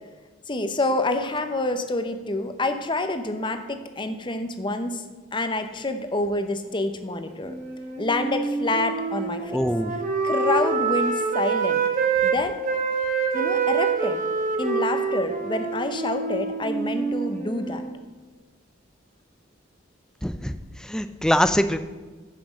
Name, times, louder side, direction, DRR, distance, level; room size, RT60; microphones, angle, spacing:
voice 1, 0.5-5.0 5.3-7.6 8.0-9.7 10.2-11.8 12.2-12.6 13.3-14.2 14.6-17.8, left 2 dB, 25° left, 8 dB, 0.8 m, -27 dB
Wind instrument woodwind instrument, 7.4-12.4 12.6-17.9, right 5 dB, 40° right, 1.6 m, -26 dB
voice 2, 9.5-10.0 20.2-20.5 20.8-21.8, equal, 5° left, 10 dB, 0.4 m, -23 dB
9.9 x 6.0 x 7.4 m, 1.3 s
head